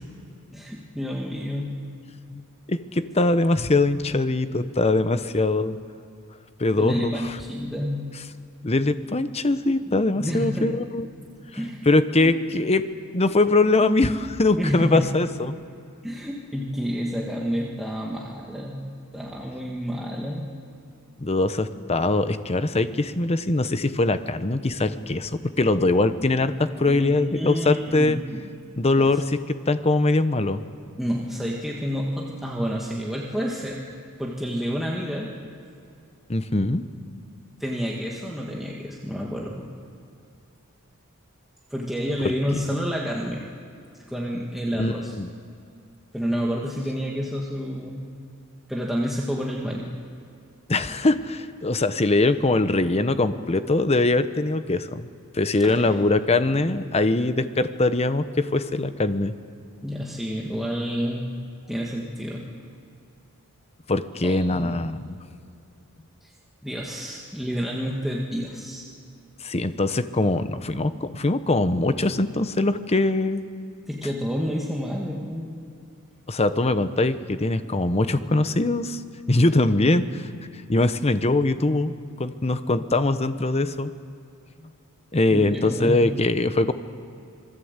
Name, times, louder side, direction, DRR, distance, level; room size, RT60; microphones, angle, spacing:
voice 1, 0.5-1.8 6.8-8.0 10.1-10.7 11.5-11.9 12.2-12.3 14.6-15.1 16.0-18.8 19.1-20.5 26.9-28.5 29.0-29.1 31.0-33.8 34.2-35.3 37.6-39.7 41.7-43.4 44.1-45.2 46.1-48.1 48.7-49.9 55.6-56.0 59.8-61.3 61.7-62.5 64.2-64.7 66.2-66.3 66.6-68.8 73.9-75.6 85.3-86.0, equal, ahead, -3 dB, 1.7 m, -29 dB
voice 2, 2.7-5.8 6.6-7.4 8.6-11.1 11.9-12.8 13.1-15.6 21.2-28.2 28.8-29.4 29.7-30.6 36.3-36.8 44.8-45.3 50.7-55.1 55.3-59.3 63.9-65.1 69.4-73.4 76.3-79.0 79.3-80.3 80.7-83.9 85.1-86.7, left 2 dB, 30° left, 11 dB, 0.9 m, -22 dB
26.5 x 20.5 x 8.2 m, 2.5 s
head